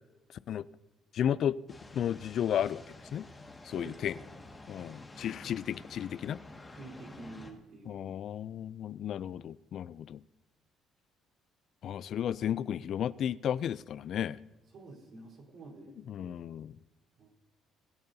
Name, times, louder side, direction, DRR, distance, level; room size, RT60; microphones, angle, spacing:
voice 1, 1.1-1.6 1.9-2.8 3.1-3.3 3.6-4.1 4.7-6.4 7.9-10.2 11.8-14.4 16.1-16.7, left 9 dB, 60° left, 18 dB, 0.3 m, -33 dB
sound 1, 1.7-7.5, left 2 dB, 20° left, 1.8 m, -50 dB
voice 2, 3.7-4.4 4.7-5.0 6.7-8.1 14.7-16.4 17.2-17.3, right 3 dB, 60° right, -1 dB, 4.0 m, -50 dB
24.0 x 10.5 x 2.7 m, 1.0 s
cardioid pair, 85°, 0 cm